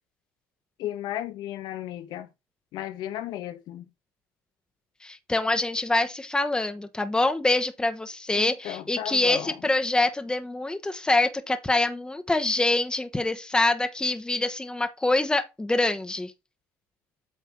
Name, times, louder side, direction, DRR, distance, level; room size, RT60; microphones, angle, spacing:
voice 1, 0.8-2.3 2.7-3.8 8.3-9.6, left 12 dB, 70° left, 1.1 m, -34 dB
voice 2, 5.0-16.3, left 2 dB, 10° left, 1.1 m, -25 dB
8.5 x 3.4 x 5.8 m
supercardioid pair, 80°, 8 cm